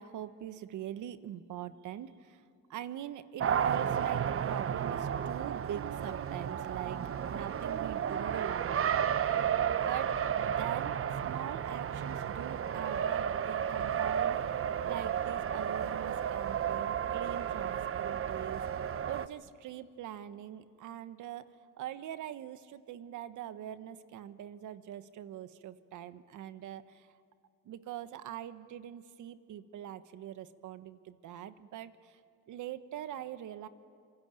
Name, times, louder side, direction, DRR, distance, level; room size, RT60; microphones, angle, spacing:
voice 1, 0.0-2.4 2.7-9.1 9.8-10.1 10.5-11.0 11.2-14.4 14.8-18.6 19.0-21.5 21.8-27.1 27.6-32.2 32.5-33.7, right 11 dB, 80° right, 12 dB, 1.3 m, -43 dB
Race car auto racing, 3.4-19.3, right 8 dB, 45° right, 0.9 m, -32 dB
26.0 x 24.0 x 9.2 m, 2.3 s
cardioid pair, 90°, 30 cm